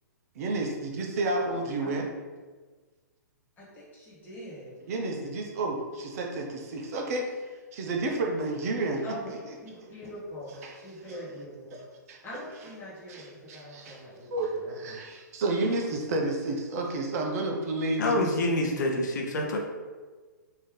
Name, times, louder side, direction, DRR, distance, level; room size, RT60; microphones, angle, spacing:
voice 1, 0.4-2.1 4.9-7.3 7.7-9.0 10.6-10.7 11.1-11.2 11.7-12.2 13.1-14.0 14.3-18.2, right 2 dB, 50° right, 1 dB, 0.6 m, -31 dB
voice 2, 1.4-1.9 3.6-4.8 9.0-9.3 9.6-11.8 12.2-15.0, equal, 20° left, -7 dB, 1.5 m, -43 dB
voice 3, 18.0-19.6, left 1 dB, 65° left, 1 dB, 0.6 m, -27 dB
3.3 x 2.7 x 3.7 m, 1.4 s
hypercardioid pair, 130°, 10 cm